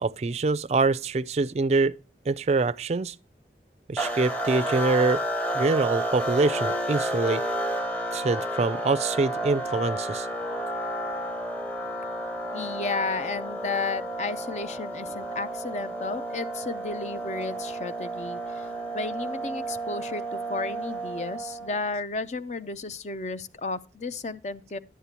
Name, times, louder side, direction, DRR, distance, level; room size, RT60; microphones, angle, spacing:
voice 1, 0.0-1.9 2.3-3.1 3.9-5.2 5.5-7.4 8.1-10.3, right 3 dB, 35° right, 0.4 m, -25 dB
sound 1, 4.0-21.8, right 1 dB, 10° left, 0.9 m, -31 dB
voice 2, 12.5-18.7 18.9-24.8, left 3 dB, 40° left, 0.5 m, -33 dB
11.0 x 8.2 x 2.9 m
head